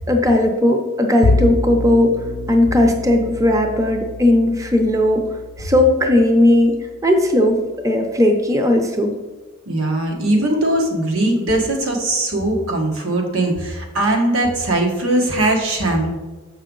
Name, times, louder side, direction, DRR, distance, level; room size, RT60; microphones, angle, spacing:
voice 1, 0.1-2.1 2.5-5.2 5.6-6.8 7.0-7.6 7.8-9.1, left 1 dB, 15° right, 4 dB, 0.5 m, -16 dB
Bowed string instrument, 1.2-7.7, left 2 dB, 60° left, 0.5 m, -27 dB
voice 2, 9.7-16.1, right 1 dB, 90° right, 0 dB, 1.4 m, -20 dB
7.0 x 5.4 x 3.8 m, 1.2 s
head